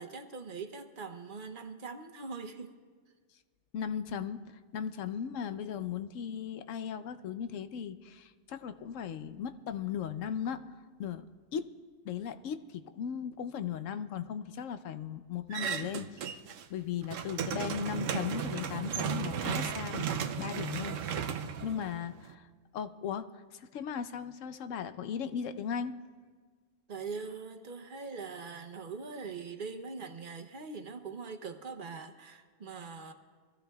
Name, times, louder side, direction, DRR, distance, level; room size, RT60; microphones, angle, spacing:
voice 1, 0.0-2.8 26.9-33.1, right 4 dB, 45° right, 7 dB, 0.8 m, -42 dB
voice 2, 3.7-10.6 11.0-11.2 11.5-11.7 12.0-16.3 16.7-21.0 21.6-22.5 22.7-26.0, left 8 dB, 75° left, 10 dB, 1.0 m, -37 dB
sound 1, 15.5-16.6 16.9-22.3, right 7 dB, 75° right, 1.0 m, -35 dB
24.0 x 14.5 x 2.3 m, 1.5 s
omnidirectional pair, 1.3 m